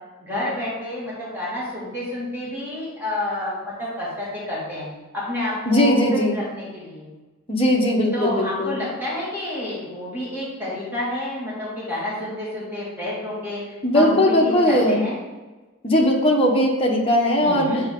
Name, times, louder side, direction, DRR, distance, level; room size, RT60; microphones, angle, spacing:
voice 1, 0.2-4.9 5.1-7.1 8.1-15.2 17.4-17.8, left 1 dB, 10° right, -8 dB, 2.4 m, -29 dB
voice 2, 5.7-6.4 7.5-8.8 13.8-15.0 15.8-17.7, left 1 dB, 25° left, -1 dB, 1.2 m, -19 dB
8.9 x 4.4 x 3.8 m, 1.2 s
head